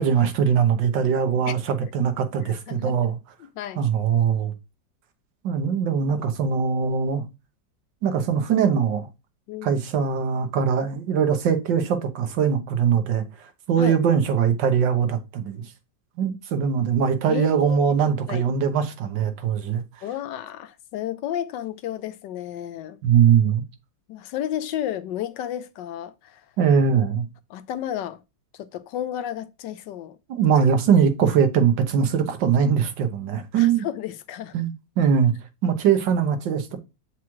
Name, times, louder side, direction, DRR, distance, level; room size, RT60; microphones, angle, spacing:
voice 1, 0.0-3.2 3.8-4.5 5.4-7.2 8.0-9.1 9.6-13.2 13.7-15.6 16.2-19.8 23.0-23.6 26.6-27.2 30.3-33.8 34.5-35.3 35.6-36.8, right 7 dB, 75° right, 1.6 m, -21 dB
voice 2, 2.4-3.1 3.4-3.8 9.5-9.8 13.8-14.0 17.3-17.8 18.3-18.4 20.0-23.0 24.1-26.5 27.5-28.2 28.5-30.2 33.5-34.6, left 11 dB, 75° left, 1.2 m, -32 dB
7.3 x 4.7 x 3.1 m
omnidirectional pair, 2.0 m